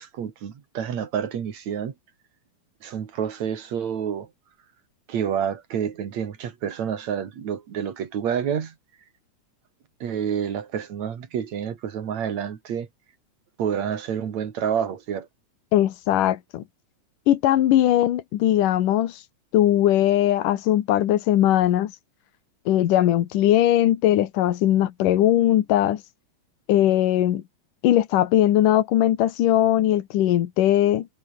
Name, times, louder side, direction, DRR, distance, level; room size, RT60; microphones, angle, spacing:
voice 1, 0.0-1.9 2.8-4.3 5.1-8.8 10.0-12.9 13.6-15.3, right 8 dB, 60° right, 3.5 m, -28 dB
voice 2, 15.7-16.6 17.3-19.2 19.5-21.9 22.7-26.0 26.7-27.4 27.8-31.1, left 12 dB, 85° left, 3.0 m, -20 dB
omnidirectional pair, 3.6 m